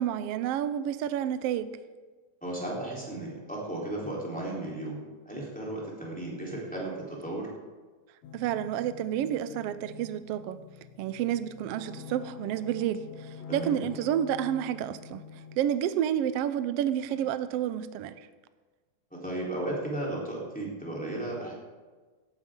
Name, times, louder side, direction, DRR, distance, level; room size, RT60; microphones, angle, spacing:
voice 1, 0.0-1.7 8.3-10.6 11.0-15.2 15.6-18.2, right 10 dB, 85° right, 12 dB, 1.3 m, -30 dB
voice 2, 2.4-7.5 13.5-13.8 19.1-21.5, right 1 dB, 5° left, -6 dB, 3.5 m, -35 dB
sound 1, 8.2-15.6, left 7 dB, 60° left, 2.2 m, -46 dB
17.5 x 12.0 x 3.8 m, 1.4 s
omnidirectional pair, 3.5 m